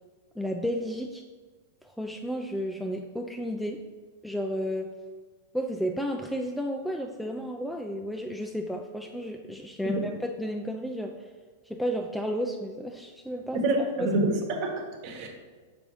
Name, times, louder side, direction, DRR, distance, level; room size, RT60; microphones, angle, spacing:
voice 1, 0.4-1.2 1.8-3.8 4.2-4.9 5.5-11.3 11.7-13.6 14.0-14.1, equal, ahead, 1 dB, 0.4 m, -32 dB
voice 2, 13.5-15.3, right 2 dB, 50° right, 2 dB, 1.2 m, -27 dB
6.0 x 5.4 x 3.0 m, 1.5 s
hypercardioid pair, 110°, 0 cm